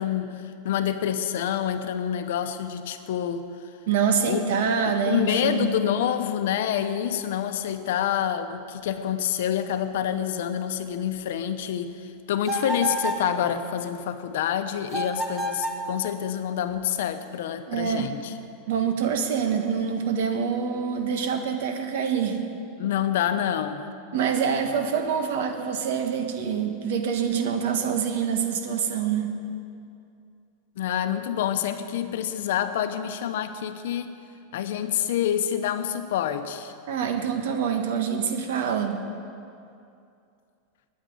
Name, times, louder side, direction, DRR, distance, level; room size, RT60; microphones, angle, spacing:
voice 1, 0.0-3.5 4.3-4.4 4.9-18.3 22.8-23.8 30.8-34.2 34.5-36.7, left 10 dB, 65° left, 9 dB, 0.8 m, -27 dB
voice 2, 3.9-5.7 17.7-18.1 18.7-22.4 24.1-29.3 36.9-39.0, right 7 dB, 65° right, 5 dB, 1.4 m, -26 dB
sound 1, 12.4-13.3 14.9-15.9, right 1 dB, 15° right, 1.0 m, -29 dB
9.4 x 9.2 x 9.5 m, 2.5 s
supercardioid pair, 175°, 0 cm